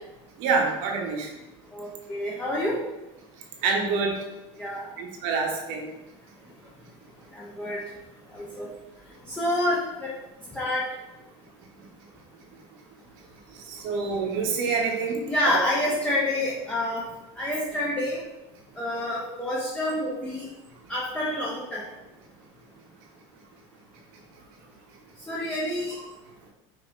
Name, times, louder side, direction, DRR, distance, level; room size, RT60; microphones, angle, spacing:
voice 1, 0.4-1.3 3.6-4.2 5.0-5.9 13.7-15.6, right 4 dB, 70° right, 1 dB, 1.0 m, -26 dB
voice 2, 1.7-2.8 4.6-4.9 7.3-7.8 8.3-8.7 9.3-10.1 10.5-10.9 15.3-17.0 17.4-18.2 18.8-20.5 20.9-21.8 25.3-26.0, left 1 dB, 10° left, -5 dB, 0.8 m, -28 dB
5.2 x 2.8 x 3.1 m, 1.0 s
supercardioid pair, 110°, 16 cm